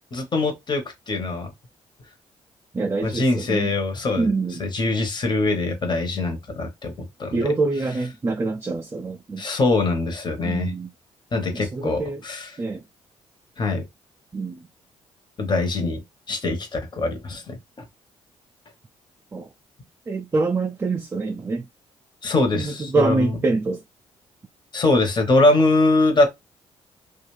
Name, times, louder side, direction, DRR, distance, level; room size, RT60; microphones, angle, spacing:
voice 1, 0.1-1.5 3.0-4.3 4.6-7.5 9.4-10.7 11.3-12.6 13.6-13.8 15.4-16.0 16.3-17.8 22.2-23.4 24.7-26.3, left 2 dB, 40° left, 1.0 m, -23 dB
voice 2, 2.7-3.7 4.2-4.6 7.3-9.4 10.4-10.9 11.7-12.2 12.6-12.8 14.3-14.6 19.3-19.5 20.1-21.7 22.5-23.8, right 3 dB, 20° right, 0.3 m, -25 dB
2.5 x 2.4 x 3.1 m
cardioid pair, 85°, 12 cm